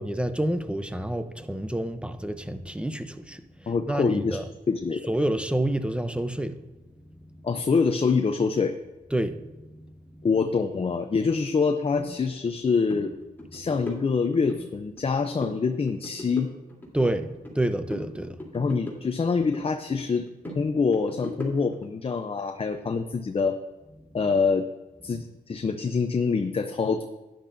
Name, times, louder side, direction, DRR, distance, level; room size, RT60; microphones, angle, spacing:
voice 1, 0.0-4.4 5.1-6.6 9.1-9.6 10.1-10.3 16.9-18.6, right 1 dB, 5° right, 0.8 m, -28 dB
voice 2, 3.7-4.4 4.7-5.0 7.4-8.7 10.2-13.1 13.5-16.5 18.5-20.3 20.5-23.6 24.1-24.6 25.0-27.0, left 5 dB, 35° left, 0.6 m, -25 dB
sound 1, 12.0-12.1 12.5-12.6 12.9-13.1 13.4-14.6 15.0-15.6 15.9-17.6 17.9-19.7 20.0-21.8, equal, 10° left, 3.4 m, -39 dB
12.0 x 10.5 x 2.7 m
cardioid pair, 70°, 16 cm